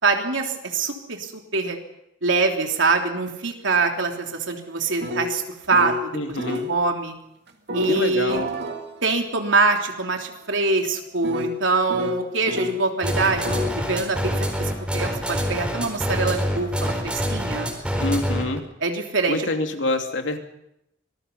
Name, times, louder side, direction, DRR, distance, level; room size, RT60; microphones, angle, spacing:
voice 1, 0.0-1.8 2.2-5.4 5.7-6.4 6.7-7.1 7.7-8.4 9.0-13.5 13.9-14.2 14.5-17.7 18.8-19.5, right 3 dB, 85° right, 3 dB, 3.4 m, -24 dB
sound 1, 3.9-6.1 6.4-6.7 7.7-12.8 13.2-13.7, left 2 dB, 60° right, 2.5 m, -32 dB
voice 2, 6.1-6.7 7.9-8.5 18.0-18.6 19.3-20.4, left 2 dB, 80° left, 5 dB, 2.5 m, -26 dB
sound 2, 13.0-18.6, equal, 5° right, 4.3 m, -25 dB
25.5 x 20.0 x 5.6 m, 0.82 s
head